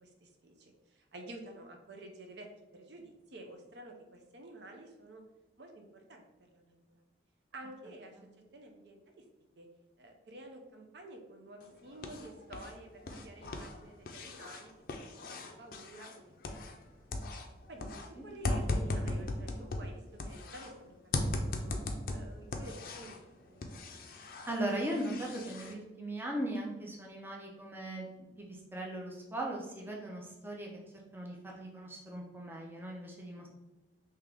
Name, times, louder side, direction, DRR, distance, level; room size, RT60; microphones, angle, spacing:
voice 1, 0.0-5.2 5.6-6.2 6.5-6.8 7.5-8.2 8.5-9.2 9.6-9.7 10.0-14.7 15.3-16.5 16.9-17.0 17.7-21.7 22.1-23.7, right 1 dB, 70° right, 3 dB, 0.6 m, -50 dB
sound 1, 11.6-12.7 13.0-16.9 17.1-20.7 21.1-23.2 23.6-25.7, left 2 dB, 50° left, 0.4 m, -38 dB
voice 2, 24.5-30.7 31.1-33.5, right 1 dB, 10° right, -2 dB, 0.5 m, -38 dB
3.7 x 2.8 x 3.3 m, 1.0 s
head